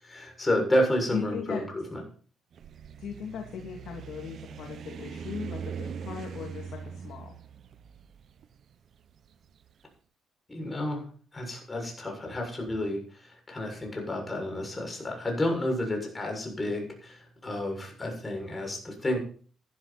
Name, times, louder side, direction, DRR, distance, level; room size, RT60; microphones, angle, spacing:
voice 1, 0.0-2.0 10.5-11.1 11.3-19.2, left 1 dB, 20° left, 2 dB, 7.0 m, -30 dB
voice 2, 1.1-1.6 3.0-7.4, left 7 dB, 70° left, 1 dB, 3.1 m, -38 dB
sound 1, 2.5-9.7, right 7 dB, 60° right, 1.0 m, -41 dB
15.0 x 12.0 x 4.5 m, 0.43 s
cardioid pair, 90°, 0 cm